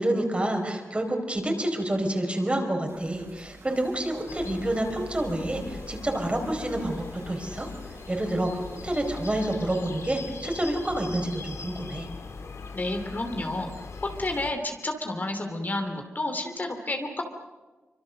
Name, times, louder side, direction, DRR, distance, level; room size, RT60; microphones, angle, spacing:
voice 1, 0.0-12.1, right 1 dB, 25° right, 3 dB, 4.6 m, -28 dB
sound 1, 2.9-9.4, right 2 dB, 65° right, 6.4 m, -50 dB
sound 2, 4.3-14.5, left 4 dB, 80° left, 2.7 m, -41 dB
voice 2, 12.7-13.7 14.2-17.2, left 2 dB, 40° left, 5 dB, 2.9 m, -30 dB
26.5 x 25.0 x 6.6 m, 1.2 s
wide cardioid pair, 90°, 5 cm